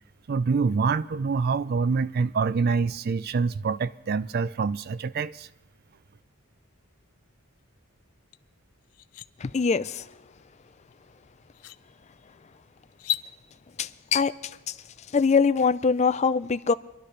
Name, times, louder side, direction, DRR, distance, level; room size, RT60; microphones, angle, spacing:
voice 1, 0.3-5.5, right 5 dB, 45° right, 0.4 m, -26 dB
sound 1, 8.3-8.4 8.8-9.3 10.9-11.0 11.5-11.8 12.9-13.3, left 13 dB, 90° left, 0.5 m, -32 dB
voice 2, 9.4-10.1 13.8-14.8 15.1-16.7, left 5 dB, 30° left, 0.4 m, -23 dB
25.0 x 11.5 x 3.3 m
head